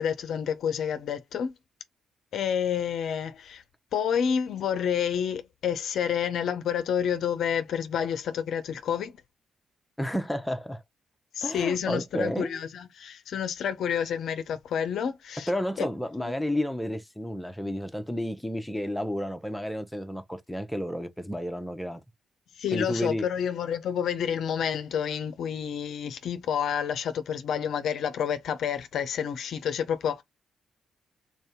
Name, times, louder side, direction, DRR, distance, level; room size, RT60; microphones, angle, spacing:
voice 1, 0.0-1.5 2.3-3.6 3.9-9.2 11.3-15.5 15.8-15.9 16.2-16.3 22.6-30.2, left 8 dB, 65° left, 0.5 m, -29 dB
voice 2, 10.0-10.8 11.4-12.6 15.5-22.0 22.7-23.3, equal, 5° left, 0.7 m, -31 dB
3.6 x 2.7 x 3.5 m
hypercardioid pair, 40°, 0 cm